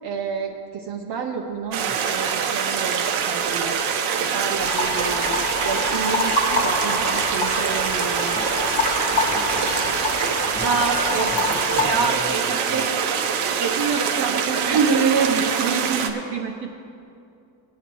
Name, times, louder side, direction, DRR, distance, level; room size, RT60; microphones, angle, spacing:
voice 1, 0.0-3.8 4.2-5.4 5.6-8.4 10.6-11.3 11.8-12.9 13.3-16.8, right 5 dB, 50° right, 1 dB, 0.8 m, -27 dB
sound 1, 1.7-16.1, right 7 dB, 85° right, 1.1 m, -24 dB
sound 2, 4.6-12.0, left 3 dB, 40° left, 1.4 m, -26 dB
voice 2, 8.3-13.0, right 2 dB, 20° right, 0 dB, 1.6 m, -37 dB
19.5 x 9.3 x 3.1 m, 2.6 s
cardioid pair, 160°, 49 cm